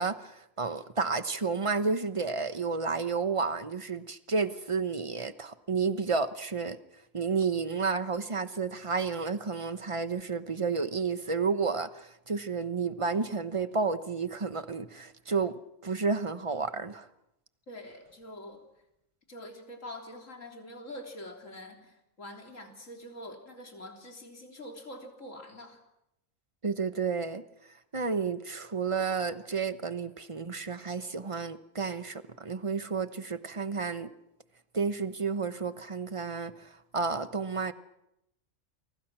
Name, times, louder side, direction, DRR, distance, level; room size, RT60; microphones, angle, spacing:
voice 1, 0.0-6.8 7.1-15.5 15.8-17.1 26.6-27.4 27.9-34.1 34.7-37.7, right 4 dB, 25° right, 11 dB, 1.0 m, -31 dB
voice 2, 17.7-18.6 19.3-25.8, left 1 dB, 70° left, 3 dB, 3.9 m, -45 dB
29.5 x 24.5 x 6.1 m, 0.84 s
omnidirectional pair, 1.4 m